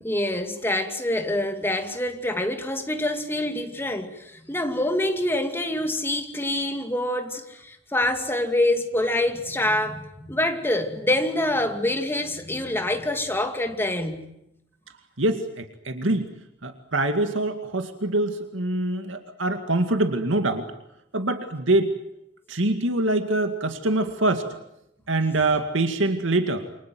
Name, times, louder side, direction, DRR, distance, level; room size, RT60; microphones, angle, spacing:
voice 1, 0.0-14.3, left 1 dB, 10° left, 2.4 m, -26 dB
voice 2, 15.2-16.3 16.6-20.7 21.1-21.9 22.5-24.5 25.1-26.7, right 2 dB, 85° right, 2.2 m, -24 dB
28.5 x 25.0 x 7.8 m
head